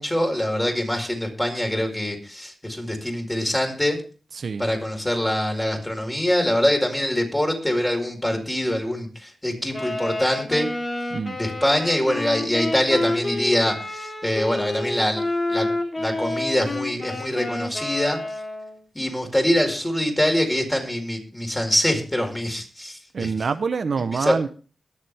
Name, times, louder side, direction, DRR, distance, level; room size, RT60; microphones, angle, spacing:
voice 1, 0.0-4.0 4.6-10.7 11.3-15.2 15.5-15.7 16.0-18.2 18.9-23.3 24.1-24.4, left 1 dB, 10° left, 2 dB, 4.7 m, -24 dB
voice 2, 4.4-4.7 11.1-11.4 23.1-24.5, right 5 dB, 70° right, 10 dB, 0.8 m, -26 dB
Wind instrument woodwind instrument, 9.7-18.8, left 2 dB, 35° left, 3.3 m, -29 dB
22.0 x 7.4 x 3.5 m, 0.37 s
cardioid pair, 60°, 0 cm